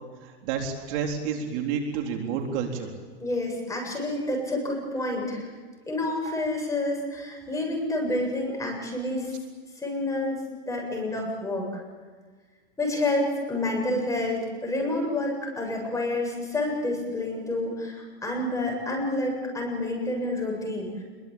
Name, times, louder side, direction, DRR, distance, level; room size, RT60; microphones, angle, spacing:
voice 1, 0.2-2.9, right 6 dB, 50° right, 2 dB, 4.0 m, -30 dB
voice 2, 3.2-5.5 5.9-9.4 9.8-11.7 12.8-21.0, left 2 dB, 10° left, 0 dB, 7.6 m, -29 dB
26.5 x 22.5 x 8.9 m, 1.5 s
supercardioid pair, 140°, 34 cm